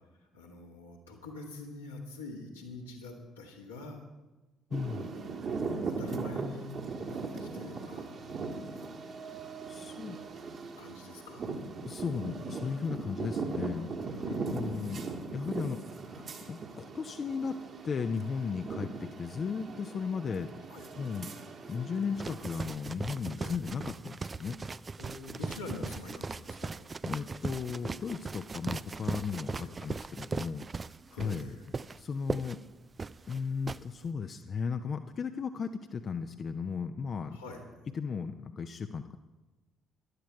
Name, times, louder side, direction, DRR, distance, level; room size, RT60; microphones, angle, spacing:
voice 1, 0.2-4.0 4.9-8.1 9.7-10.4 10.8-11.5 14.2-14.9 20.7-20.9 23.4-23.6 25.0-26.8 29.6-29.7 31.1-31.6 37.3-37.7, left 2 dB, 80° left, -2 dB, 1.9 m, -45 dB
voice 2, 4.7-5.1 9.7-10.2 11.8-15.1 15.3-17.6 17.8-20.5 21.0-21.3 21.7-24.6 27.0-31.5 31.9-32.6 33.3-37.4 37.9-39.2, left 5 dB, 40° left, 8 dB, 0.6 m, -36 dB
sound 1, 4.7-22.6, right 4 dB, 45° right, 1.6 m, -39 dB
sound 2, 22.2-33.8, right 4 dB, 30° right, 0.3 m, -38 dB
14.5 x 11.5 x 4.6 m, 1.1 s
figure-of-eight pair, 45°, 0 cm